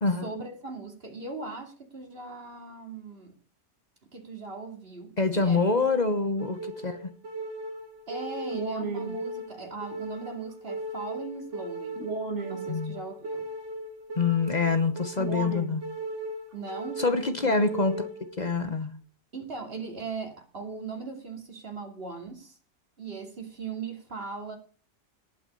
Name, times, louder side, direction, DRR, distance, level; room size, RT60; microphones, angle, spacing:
voice 1, 0.2-3.3 4.1-5.6 8.1-12.1 12.5-13.5 16.5-17.0 17.4-17.7 19.3-22.6 23.0-24.6, right 4 dB, 55° right, 4 dB, 2.8 m, -39 dB
voice 2, 5.2-7.1 12.7-12.9 14.2-15.8 17.0-18.1 18.4-18.9, left 4 dB, 40° left, 9 dB, 1.2 m, -26 dB
sound 1, 5.5-18.5, right 2 dB, 85° right, 2.1 m, -36 dB
18.0 x 6.1 x 5.4 m, 0.40 s
omnidirectional pair, 1.2 m